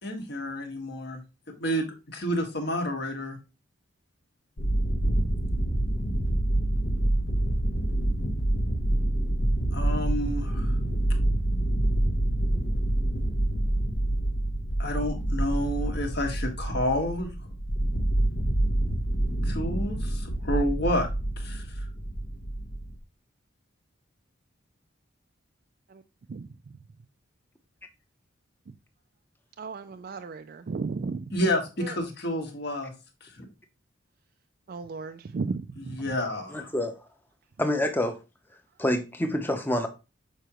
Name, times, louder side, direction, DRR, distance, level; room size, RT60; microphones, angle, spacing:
voice 1, 0.0-1.2 1.6-1.9 2.1-3.4 9.7-10.8 14.8-17.5 19.4-21.1 21.4-21.6 31.3-32.9 33.2-33.5 35.8-36.7, equal, 55° left, 1.5 m, -30 dB
sound 1, 4.6-23.0, right 1 dB, 75° left, 1.3 m, -27 dB
voice 2, 29.6-31.3 31.8-31.9 34.7-36.0, right 4 dB, 50° right, 0.3 m, -34 dB
voice 3, 36.5-36.9 37.6-38.2 38.8-39.9, left 1 dB, 10° left, 0.8 m, -27 dB
6.7 x 4.9 x 3.0 m
head